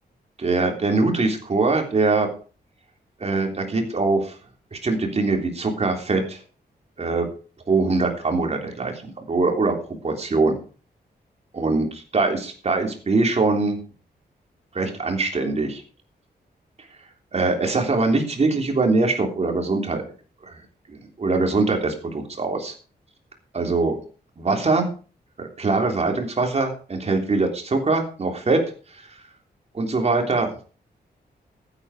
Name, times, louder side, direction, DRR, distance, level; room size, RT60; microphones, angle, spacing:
voice 1, 0.4-2.3 3.2-4.4 4.7-6.4 7.0-7.3 7.7-9.7 10.0-10.6 11.6-11.8 12.1-13.8 14.7-15.8 17.3-20.0 20.4-20.6 20.9-22.7 23.5-24.0 24.4-24.9 25.4-28.6 28.9-29.1 29.7-30.5, right 3 dB, 40° right, 3 dB, 3.4 m, -22 dB
15.0 x 9.1 x 4.9 m, 0.39 s
wide cardioid pair, 135°, 17 cm